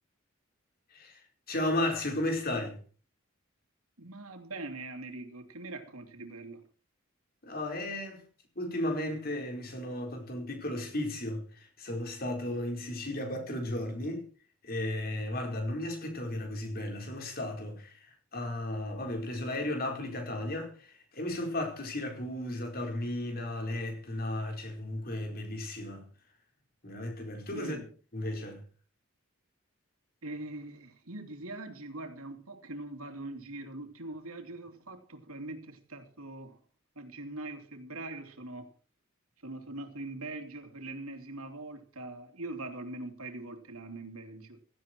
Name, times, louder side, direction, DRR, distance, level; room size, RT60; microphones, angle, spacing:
voice 1, 0.9-2.8 7.4-8.2 8.5-14.2 14.6-26.1 26.8-27.8 28.1-28.6, left 1 dB, 45° left, 4.7 m, -34 dB
voice 2, 4.0-6.7 27.5-27.9 30.2-36.6 36.9-38.7 39.4-44.6, right 2 dB, 90° right, 3.0 m, -42 dB
16.5 x 14.5 x 4.6 m
head